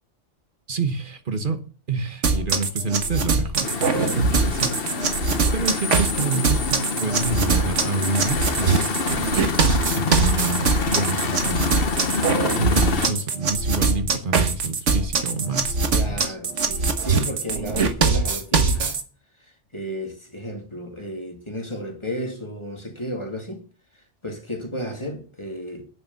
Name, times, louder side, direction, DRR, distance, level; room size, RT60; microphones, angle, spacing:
voice 1, 0.7-5.0 5.5-9.6 9.9-11.8 12.6-16.4, right 3 dB, 45° right, 1.3 m, -28 dB
sound 1, 2.2-19.0, right 4 dB, 90° right, 1.7 m, -22 dB
sound 2, 3.6-13.1, left 4 dB, 55° left, 1.3 m, -27 dB
voice 2, 15.9-19.0 19.4-23.6 24.2-25.9, equal, 25° left, 2.4 m, -33 dB
10.0 x 6.8 x 7.0 m
omnidirectional pair, 1.2 m